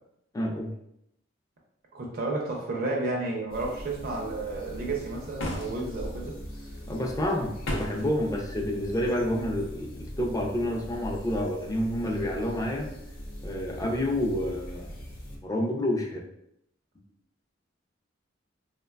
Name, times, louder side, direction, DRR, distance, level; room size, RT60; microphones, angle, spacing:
voice 1, 0.3-0.7 6.9-12.9 13.4-14.9 15.4-16.2, left 1 dB, 20° left, 0 dB, 0.4 m, -29 dB
voice 2, 1.9-6.4, right 2 dB, 50° right, -2 dB, 0.5 m, -32 dB
sound 1, 3.5-15.4, equal, 50° left, 0.7 m, -41 dB
sound 2, 5.4-6.1 7.6-8.1, equal, 85° left, 0.5 m, -32 dB
3.1 x 2.2 x 2.2 m, 0.76 s
head